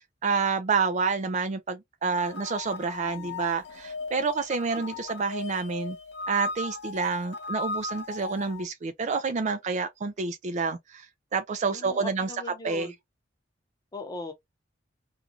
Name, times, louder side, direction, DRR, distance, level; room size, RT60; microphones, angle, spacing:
voice 1, 0.2-6.0 6.3-11.1 11.3-12.3 12.6-12.9, right 4 dB, 40° right, 0.4 m, -28 dB
sound 1, 2.2-8.6, left 3 dB, 65° left, 0.8 m, -37 dB
voice 2, 3.0-3.4 11.7-12.9 13.9-14.3, left 2 dB, 20° left, 0.8 m, -40 dB
2.6 x 2.3 x 2.8 m
head